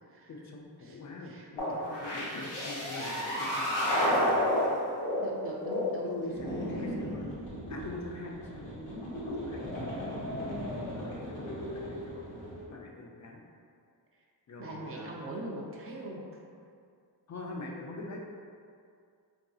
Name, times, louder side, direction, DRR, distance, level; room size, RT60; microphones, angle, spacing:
voice 1, 0.3-4.6 6.0-7.3 7.7-8.7 9.2-10.6 11.0-12.3 12.7-13.4 14.5-15.2 17.3-18.2, left 2 dB, 40° left, -1 dB, 0.4 m, -43 dB
voice 2, 0.8-1.9 5.2-6.1 6.7-7.0 14.6-16.2, right 1 dB, 30° right, -3 dB, 0.5 m, -42 dB
sound 1, 1.6-12.6, left 1 dB, 85° left, 1.0 m, -33 dB
3.7 x 2.6 x 2.3 m, 2.3 s
wide cardioid pair, 105°, 43 cm